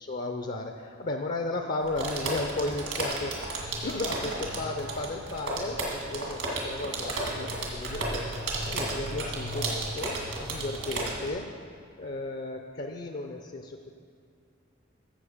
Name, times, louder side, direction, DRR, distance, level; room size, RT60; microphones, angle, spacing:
voice 1, 0.0-8.3 8.7-11.5 12.0-13.9, left 2 dB, 50° left, 4 dB, 0.6 m, -34 dB
sound 1, 1.8-11.3, right 2 dB, 80° right, 2.2 m, -33 dB
13.5 x 7.3 x 5.0 m, 2.3 s
head